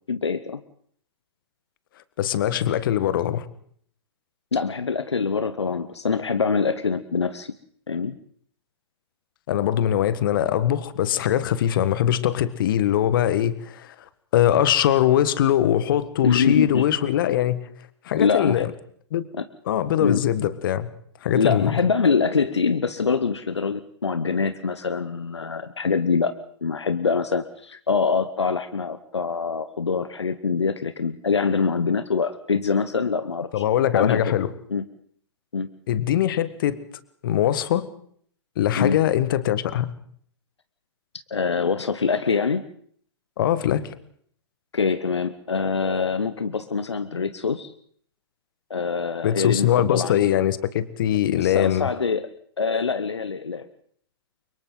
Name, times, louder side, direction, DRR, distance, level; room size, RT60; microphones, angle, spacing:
voice 1, 0.1-0.6 4.5-7.5 7.9-8.2 16.2-16.8 18.2-18.7 19.4-19.5 20.0-20.2 21.3-26.4 26.6-33.6 33.9-34.3 34.7-34.8 35.5-35.7 38.8-39.0 41.3-42.6 44.7-47.7 48.7-50.2 51.3-52.3 52.6-53.7, left 5 dB, 80° left, 12 dB, 1.0 m, -24 dB
voice 2, 2.2-3.4 9.5-13.9 14.3-17.7 18.0-18.7 19.1-19.2 19.6-20.9 21.2-21.7 33.5-34.5 35.9-36.8 37.2-37.9 38.6-39.9 43.4-43.9 49.2-51.9, left 11 dB, 50° left, 14 dB, 1.6 m, -22 dB
30.0 x 24.0 x 4.0 m, 0.62 s
figure-of-eight pair, 115°, 14 cm